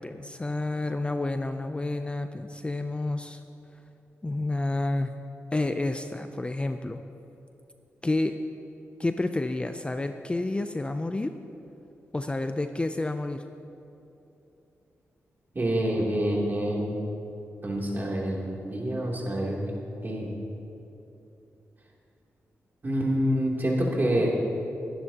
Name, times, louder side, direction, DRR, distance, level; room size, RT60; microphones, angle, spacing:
voice 1, 0.0-3.4 4.2-5.1 5.5-7.0 8.0-8.4 9.0-11.3 12.1-13.4, left 2 dB, 20° left, 8 dB, 0.5 m, -29 dB
voice 2, 15.5-16.9 17.6-19.7 20.0-20.3 22.8-24.4, equal, 40° right, -3 dB, 3.0 m, -27 dB
22.5 x 11.0 x 2.9 m, 2.9 s
cardioid pair, 75°, 5 cm